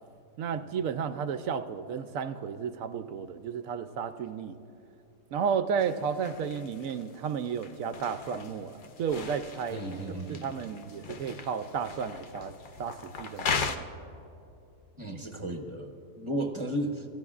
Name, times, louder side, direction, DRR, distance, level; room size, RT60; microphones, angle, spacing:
voice 1, 0.4-4.6 5.3-9.8 10.3-13.9, right 6 dB, 70° right, 10 dB, 0.8 m, -33 dB
sound 1, 5.8-13.8, left 5 dB, 75° left, 0.4 m, -38 dB
voice 2, 9.7-10.5 15.0-17.1, right 1 dB, 25° right, 3 dB, 0.7 m, -34 dB
28.5 x 14.5 x 2.4 m, 2.9 s
omnidirectional pair, 1.8 m